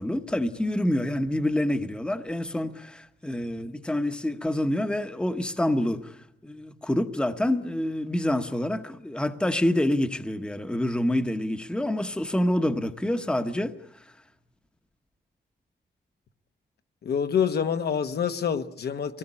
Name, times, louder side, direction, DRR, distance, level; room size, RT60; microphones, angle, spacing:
voice 1, 0.0-6.1 6.4-13.7, left 1 dB, 5° left, 1.0 m, -27 dB
voice 2, 17.0-19.2, left 7 dB, 65° left, 1.2 m, -26 dB
24.5 x 18.5 x 9.8 m
wide cardioid pair, 175°, 18 cm